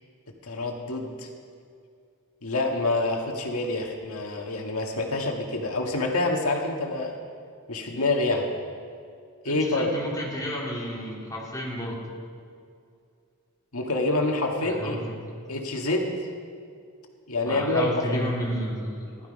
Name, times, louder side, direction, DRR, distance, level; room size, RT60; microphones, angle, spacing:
voice 1, 0.4-1.3 2.4-7.2 7.7-8.4 9.4-9.9 13.7-15.0 15.5-16.1 17.3-18.3, left 2 dB, 75° left, 1 dB, 1.8 m, -27 dB
voice 2, 9.5-12.0 14.6-15.1 17.5-19.1, equal, 15° left, -4 dB, 3.1 m, -32 dB
16.0 x 12.0 x 5.4 m, 2.3 s
head